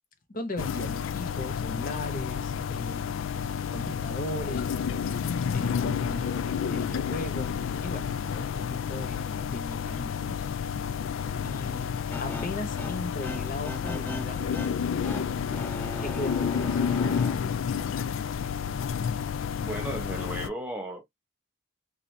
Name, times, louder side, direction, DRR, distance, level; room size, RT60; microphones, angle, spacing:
voice 1, 0.3-3.1 3.7-4.8 5.5-7.5 7.8-10.4 11.4-14.4 16.0-16.8, left 1 dB, 45° left, 0.9 m, -37 dB
sound 1, 0.6-20.5, left 7 dB, 85° left, 0.3 m, -30 dB
sound 2, 12.1-17.4, left 1 dB, 10° left, 0.3 m, -39 dB
voice 2, 19.6-21.0, right 1 dB, 10° right, 1.0 m, -35 dB
2.7 x 2.5 x 3.2 m
head